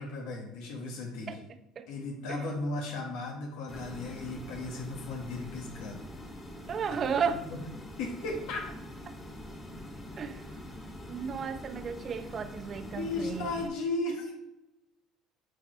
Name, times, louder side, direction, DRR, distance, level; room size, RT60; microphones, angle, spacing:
voice 1, 0.0-1.4 1.9-6.0 7.2-7.6 8.0-8.6 13.0-14.3, left 2 dB, 80° left, 1 dB, 1.3 m, -35 dB
voice 2, 1.3-1.9 2.3-2.5 6.7-7.4 10.2-10.5 11.1-13.7, right 6 dB, 45° right, 10 dB, 0.6 m, -34 dB
sound 1, 3.7-13.7, left 1 dB, 25° left, 1.9 m, -44 dB
9.2 x 4.5 x 3.1 m, 0.89 s
supercardioid pair, 85°, 0 cm